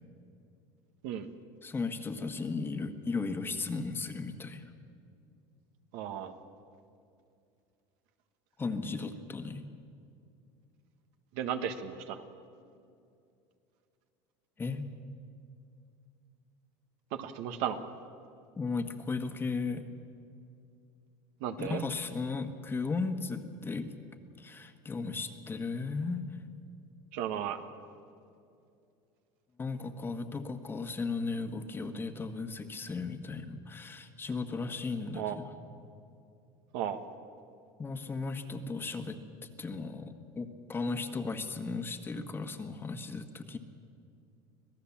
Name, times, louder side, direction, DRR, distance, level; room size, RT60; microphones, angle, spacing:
voice 1, 1.6-4.7 8.6-9.7 14.6-14.9 18.5-19.9 21.6-23.9 24.4-26.2 29.6-35.5 37.8-43.6, left 4 dB, 20° left, 7 dB, 1.5 m, -36 dB
voice 2, 5.9-6.3 11.3-12.2 17.1-17.8 21.4-21.8 27.1-27.6 35.1-35.4 36.7-37.0, right 9 dB, 70° right, 8 dB, 1.6 m, -34 dB
26.0 x 17.5 x 7.3 m, 2.5 s
supercardioid pair, 115°, 11 cm